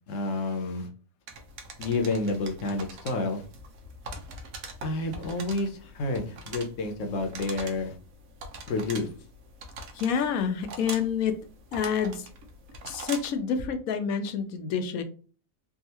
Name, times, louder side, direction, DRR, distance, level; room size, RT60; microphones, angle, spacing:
voice 1, 0.1-0.9 1.8-3.4 4.8-7.9 8.7-9.1, left 2 dB, 70° left, 5 dB, 1.0 m, -29 dB
sound 1, 1.3-13.4, right 2 dB, 80° right, 1.2 m, -43 dB
voice 2, 9.9-11.4 11.7-12.3 12.8-15.0, left 7 dB, 90° left, 8 dB, 1.1 m, -28 dB
3.6 x 2.4 x 2.8 m, 0.37 s
omnidirectional pair, 1.4 m